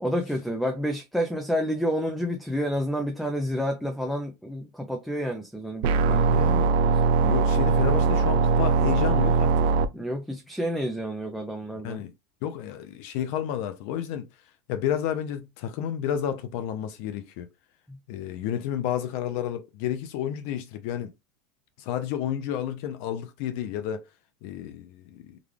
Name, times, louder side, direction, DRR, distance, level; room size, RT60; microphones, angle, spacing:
voice 1, 0.0-6.4 9.9-12.0 17.9-18.0, equal, ahead, 0.5 m, -29 dB
sound 1, 5.8-9.8, right 4 dB, 65° right, 0.5 m, -21 dB
voice 2, 5.9-6.7 7.2-9.7 11.8-12.1 12.4-14.3 14.7-17.5 18.1-21.1 21.8-24.1 24.4-25.4, left 10 dB, 60° left, 0.5 m, -31 dB
3.8 x 2.3 x 3.2 m
supercardioid pair, 145°, 0 cm